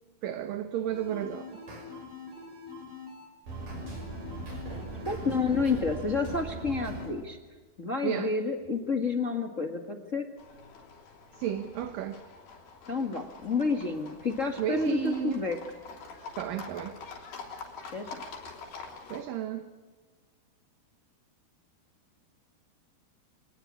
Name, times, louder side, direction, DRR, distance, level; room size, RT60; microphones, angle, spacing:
voice 1, 0.2-1.6 4.7-5.1 8.0-8.3 11.3-12.2 14.6-15.4 16.4-17.0 19.1-19.7, right 10 dB, 70° right, 2.4 m, -33 dB
sound 1, 0.9-7.1, equal, 50° right, 7.6 m, -40 dB
voice 2, 5.0-7.4 7.8-10.3 12.9-15.6 17.9-18.2, left 4 dB, 45° left, 0.9 m, -29 dB
Livestock farm animals working animals, 10.4-19.2, left 4 dB, 60° left, 5.3 m, -46 dB
25.0 x 20.0 x 9.8 m
omnidirectional pair, 4.6 m